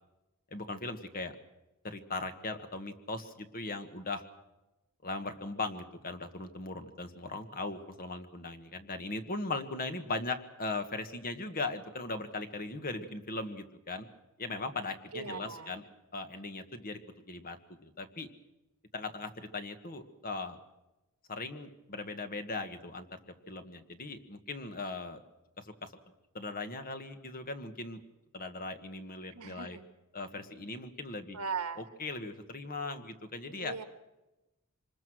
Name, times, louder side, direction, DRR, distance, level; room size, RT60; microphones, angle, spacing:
voice 1, 0.5-1.4 1.8-4.2 5.0-14.1 14.4-15.8 16.1-17.0 17.3-17.6 17.8-18.3 18.9-20.6 21.3-23.2 23.5-25.2 25.6-25.9 26.3-28.0 28.3-29.8 30.1-31.4 31.8-33.8, left 3 dB, 40° left, 8 dB, 1.6 m, -39 dB
voice 2, 15.1-15.8 29.3-29.8 31.3-31.8 33.6-33.8, right 5 dB, 85° right, 9 dB, 1.7 m, -38 dB
26.0 x 20.5 x 6.3 m, 1.0 s
head